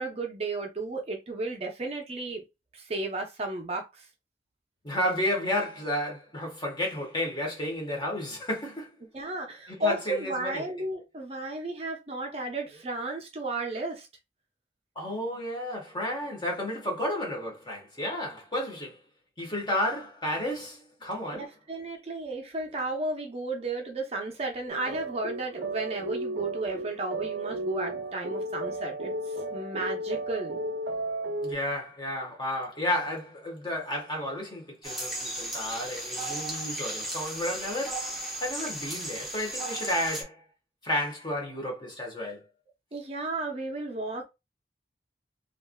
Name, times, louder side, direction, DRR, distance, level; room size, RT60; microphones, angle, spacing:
voice 1, 0.0-2.4 2.7-4.1 9.1-14.1 21.3-30.6 42.9-44.2, right 2 dB, 35° right, 0.6 m, -33 dB
voice 2, 4.8-8.9 9.7-10.6 14.9-19.0 19.4-21.5 31.4-38.0 38.4-40.4 40.8-42.4, left 1 dB, 25° left, 1.2 m, -32 dB
sound 1, 24.7-31.5, right 1 dB, 90° right, 0.7 m, -34 dB
sound 2, 34.8-40.2, right 1 dB, ahead, 0.8 m, -35 dB
3.3 x 2.5 x 2.2 m
head